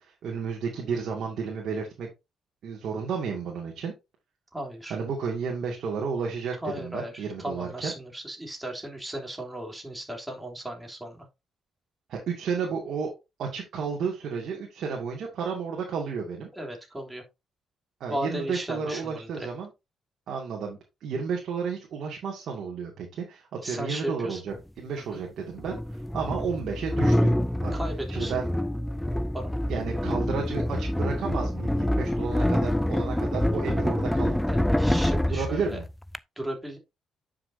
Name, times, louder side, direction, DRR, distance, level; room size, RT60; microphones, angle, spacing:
voice 1, 0.0-2.1 2.6-3.9 4.9-7.9 12.1-16.5 18.0-19.7 20.3-25.8 26.1-27.3 27.6-27.8 28.1-28.5 29.7-34.4 35.3-35.8, right 5 dB, 70° right, -1 dB, 2.3 m, -32 dB
voice 2, 4.5-5.0 6.6-11.3 16.5-17.2 18.1-19.5 23.6-24.4 25.1-25.2 27.7-28.4 29.3-29.6 34.4-35.8 36.4-36.8, right 1 dB, 10° right, 1 dB, 3.3 m, -36 dB
sound 1, 24.5-24.6 25.6-36.2, left 1 dB, 5° left, 0.5 m, -26 dB
10.0 x 6.2 x 2.8 m, 0.24 s
cardioid pair, 90°, 0 cm